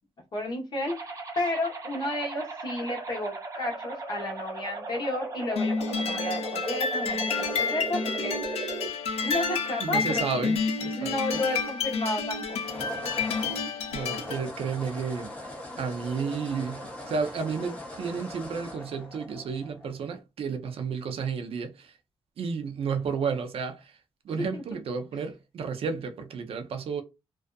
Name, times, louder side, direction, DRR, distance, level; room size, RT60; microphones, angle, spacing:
voice 1, 0.3-8.7 9.2-10.4 11.0-12.6 24.3-24.8, left 1 dB, 45° left, 1.0 m, -32 dB
sound 1, 0.9-8.9, right 3 dB, 30° right, 0.7 m, -37 dB
sound 2, 5.6-14.4, left 5 dB, 90° left, 0.5 m, -30 dB
voice 2, 9.8-11.1 13.9-15.3 15.8-21.9 22.4-23.8 24.3-27.0, right 5 dB, 65° right, 0.5 m, -32 dB
sound 3, 9.9-11.0 12.5-20.0, left 1 dB, 10° left, 0.7 m, -41 dB
2.5 x 2.3 x 2.2 m
wide cardioid pair, 165°, 10 cm